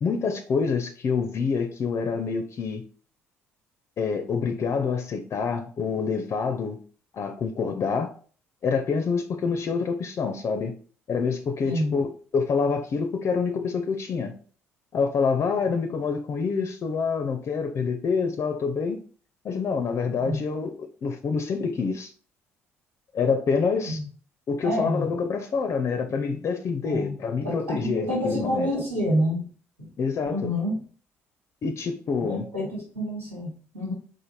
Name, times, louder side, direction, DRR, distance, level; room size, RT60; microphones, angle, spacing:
voice 1, 0.0-2.9 4.0-6.8 7.1-8.1 8.6-10.7 11.1-14.4 14.9-19.0 19.4-22.1 23.1-24.0 24.5-28.7 30.0-30.5 31.6-32.5, left 5 dB, 40° left, 6 dB, 0.5 m, -27 dB
voice 2, 24.6-25.0 26.8-27.1 27.4-29.4 29.8-29.9 30.2-30.7 32.3-33.9, equal, 85° right, -5 dB, 1.8 m, -28 dB
4.4 x 2.5 x 4.0 m, 0.43 s
figure-of-eight pair, 50°, 7 cm